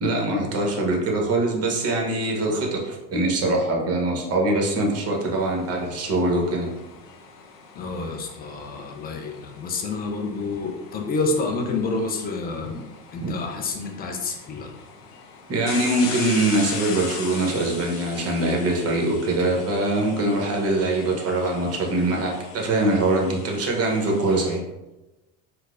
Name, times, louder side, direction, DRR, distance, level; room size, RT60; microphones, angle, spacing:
voice 1, 0.0-6.7 13.2-13.3 15.5-24.6, right 2 dB, 30° right, 0 dB, 0.9 m, -23 dB
sound 1, 4.9-24.6, left 5 dB, 75° left, 0.7 m, -40 dB
voice 2, 7.7-12.9 13.1-14.7, left 3 dB, 20° left, 2 dB, 0.4 m, -28 dB
4.4 x 2.0 x 2.4 m, 1.0 s
hypercardioid pair, 85°, 47 cm